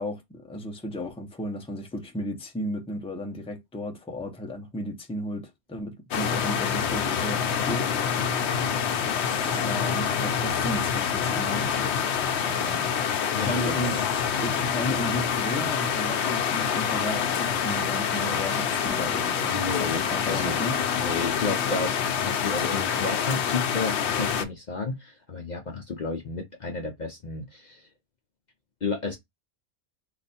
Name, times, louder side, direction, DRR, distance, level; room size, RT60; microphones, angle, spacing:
voice 1, 0.0-7.9 9.4-11.6 12.4-13.1 13.4-14.0 14.4-20.8, equal, 5° left, 0.6 m, -34 dB
sound 1, 6.1-24.4, left 7 dB, 75° left, 0.9 m, -26 dB
voice 2, 13.3-14.0 19.5-20.0 20.3-20.6 21.0-27.9 28.8-29.2, left 4 dB, 45° left, 0.7 m, -32 dB
3.2 x 2.5 x 4.1 m
omnidirectional pair, 1.2 m